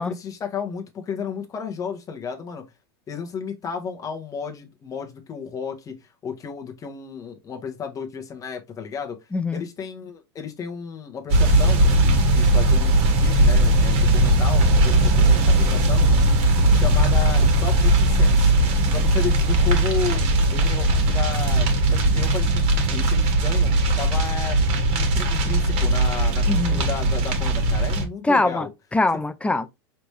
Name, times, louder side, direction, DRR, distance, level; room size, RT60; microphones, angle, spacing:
voice 1, 0.0-2.6 3.1-9.2 9.5-16.2 16.7-18.5 18.9-20.2 20.5-23.7 24.0-28.7, left 6 dB, 25° left, 1.2 m, -33 dB
voice 2, 9.3-9.6 26.5-26.8 28.2-29.7, left 2 dB, 10° left, 0.3 m, -23 dB
sound 1, 11.3-28.0, right 1 dB, 45° right, 1.7 m, -19 dB
5.0 x 3.4 x 3.2 m
hypercardioid pair, 120°, 14 cm